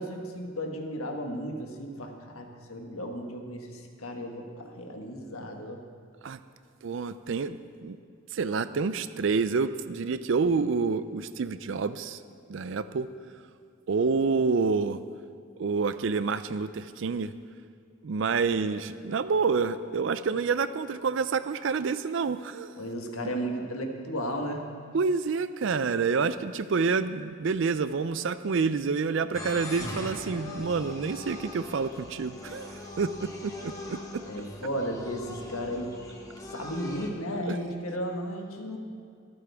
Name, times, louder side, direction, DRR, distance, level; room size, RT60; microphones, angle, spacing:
voice 1, 0.0-5.8 18.5-18.8 22.8-24.7 34.3-36.0 36.4-38.8, equal, 85° left, 3 dB, 1.5 m, -34 dB
voice 2, 6.8-8.0 8.3-12.2 12.5-13.1 13.9-15.0 15.6-17.3 18.0-22.7 24.9-34.2 37.5-37.6, right 4 dB, 60° right, 13 dB, 0.4 m, -28 dB
sound 1, 29.3-37.1, left 2 dB, 15° left, 1.1 m, -41 dB
23.5 x 8.6 x 3.5 m, 2.2 s
head